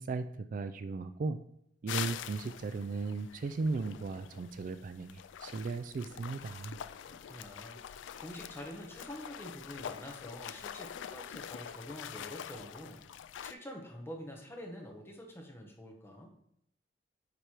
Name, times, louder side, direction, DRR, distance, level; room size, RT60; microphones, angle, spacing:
voice 1, 0.0-1.4 1.8-6.8, right 4 dB, 45° right, 9 dB, 0.3 m, -36 dB
sound 1, 1.9-13.5, left 9 dB, 80° left, 0.3 m, -45 dB
voice 2, 7.1-7.8 8.2-13.0 13.4-16.3, equal, 15° left, 1 dB, 1.1 m, -46 dB
9.0 x 3.4 x 4.4 m, 0.74 s
head